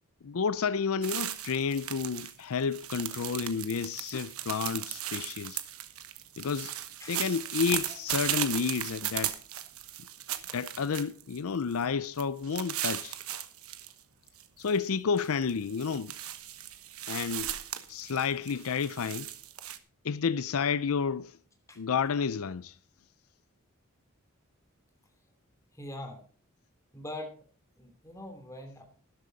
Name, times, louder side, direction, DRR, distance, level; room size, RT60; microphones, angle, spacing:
voice 1, 0.2-5.6 6.4-6.7 7.1-9.4 10.5-13.2 14.6-16.1 17.0-17.6 17.9-19.3 20.0-21.4 21.8-22.8, left 6 dB, 75° left, 0.5 m, -30 dB
sound 1, 1.0-2.3 2.6-11.4 11.7-11.8 12.2-13.9 14.3-14.8 15.2-19.8, right 12 dB, 80° right, 1.1 m, -37 dB
voice 2, 25.7-26.2 26.9-27.3 27.8-28.8, left 1 dB, 15° left, 2.9 m, -42 dB
12.5 x 11.5 x 4.0 m
head